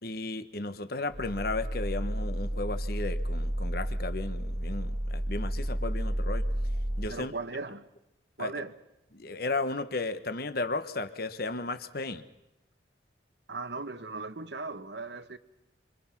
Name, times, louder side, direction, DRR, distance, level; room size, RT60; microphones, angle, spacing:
voice 1, 0.0-6.4 7.0-7.3 8.4-8.5 9.1-12.2, left 3 dB, 50° left, 1.2 m, -34 dB
sound 1, 1.1-7.1, equal, 15° right, 1.9 m, -31 dB
voice 2, 7.1-7.9 8.4-8.7 13.5-15.4, right 3 dB, 60° right, 1.3 m, -37 dB
26.5 x 25.5 x 6.0 m
head